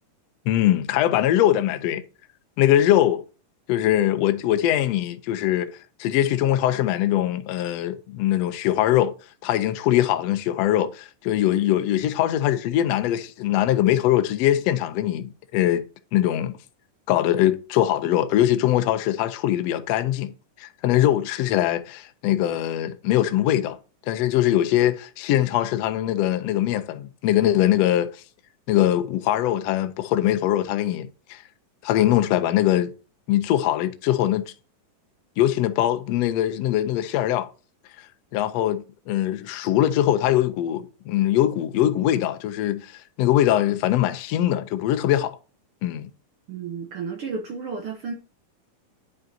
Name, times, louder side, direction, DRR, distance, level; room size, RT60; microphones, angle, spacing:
voice 1, 0.5-2.0 2.6-3.2 3.7-5.7 6.0-9.1 9.4-15.8 16.1-16.5 17.1-20.3 20.6-23.8 24.1-28.1 28.7-31.4 31.8-32.9 33.3-34.5 35.4-37.5 38.3-45.4 45.8-46.0, left 12 dB, 85° left, 1.4 m, -22 dB
voice 2, 46.5-48.1, right 5 dB, 80° right, 1.2 m, -32 dB
10.5 x 5.1 x 2.7 m
omnidirectional pair, 3.8 m